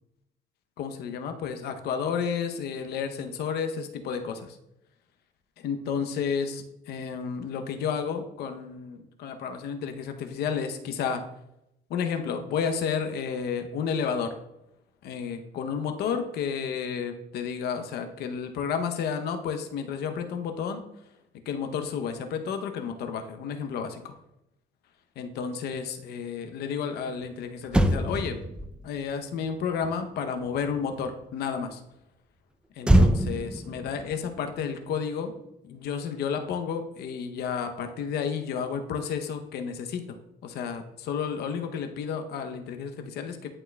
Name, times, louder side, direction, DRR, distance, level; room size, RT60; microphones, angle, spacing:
voice 1, 0.8-4.6 5.6-11.2 11.9-14.3 15.0-20.8 21.5-24.1 25.2-28.4 28.8-31.8 32.8-35.3 35.6-40.2 40.4-43.5, left 6 dB, 70° left, 6 dB, 0.7 m, -31 dB
Motor vehicle (road), 27.2-27.3 27.6-31.2 32.8-35.4 35.7-35.9, right 1 dB, 5° right, 0.4 m, -26 dB
11.0 x 4.4 x 2.2 m, 0.85 s
cardioid pair, 110°, 17 cm